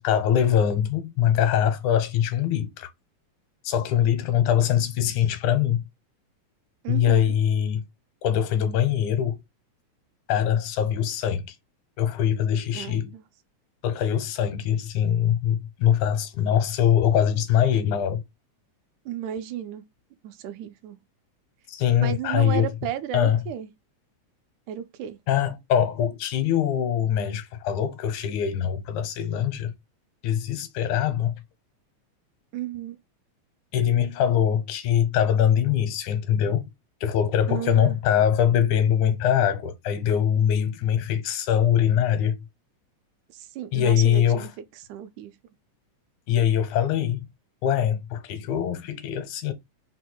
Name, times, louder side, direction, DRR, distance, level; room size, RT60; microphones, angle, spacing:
voice 1, 0.0-2.9 3.6-5.8 6.9-7.8 8.2-9.4 10.3-11.6 12.0-13.1 13.8-18.2 21.7-22.7 23.1-23.4 25.3-29.7 30.2-31.4 33.7-36.7 37.0-42.4 43.7-44.5 46.3-47.3 47.6-49.5, left 9 dB, 85° left, 2.3 m, -23 dB
voice 2, 6.8-7.4 12.7-13.2 19.1-19.8 20.2-21.0 22.0-23.7 24.7-25.2 32.5-33.0 37.5-38.0 43.3-44.5 44.9-45.3, right 10 dB, 85° right, 2.1 m, -33 dB
5.2 x 2.3 x 4.3 m
omnidirectional pair, 3.4 m